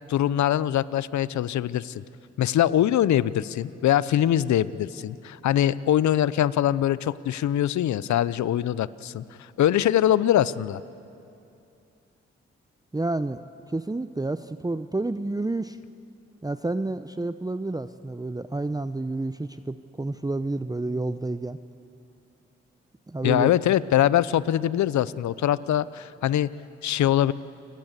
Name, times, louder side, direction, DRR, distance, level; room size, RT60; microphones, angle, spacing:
voice 1, 0.1-2.0 2.4-9.2 9.6-10.8 23.2-26.5 26.8-27.3, left 11 dB, 75° left, 18 dB, 0.7 m, -23 dB
voice 2, 12.9-13.4 13.7-15.8 16.4-21.6 23.1-23.5, right 2 dB, 15° right, 11 dB, 0.7 m, -29 dB
28.5 x 17.5 x 8.2 m, 2.7 s
supercardioid pair, 40°, 29 cm